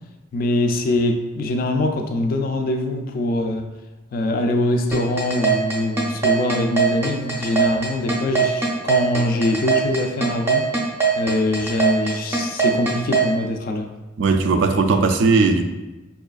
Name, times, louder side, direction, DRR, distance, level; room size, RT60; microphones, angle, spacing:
voice 1, 0.3-3.7 4.1-10.7 11.2-13.9, left 1 dB, 45° left, 5 dB, 0.3 m, -23 dB
sound 1, 4.9-13.3, right 6 dB, 10° right, 0.5 m, -20 dB
voice 2, 14.2-15.6, right 4 dB, 75° right, 6 dB, 0.3 m, -17 dB
5.4 x 2.4 x 2.3 m, 1.1 s
head